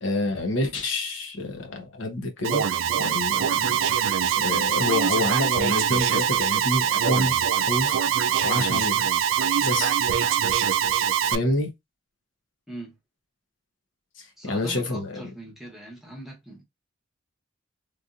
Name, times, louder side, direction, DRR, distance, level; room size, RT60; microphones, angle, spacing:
voice 1, 0.0-2.6 3.0-3.8 4.4-8.0 8.4-9.1 9.6-10.0 11.2-11.7 14.2-15.2, left 2 dB, 75° left, 0.9 m, -28 dB
Alarm, 2.4-11.4, right 8 dB, 80° right, 0.4 m, -23 dB
voice 2, 14.4-16.6, right 1 dB, ahead, 1.1 m, -41 dB
3.1 x 2.6 x 2.5 m
head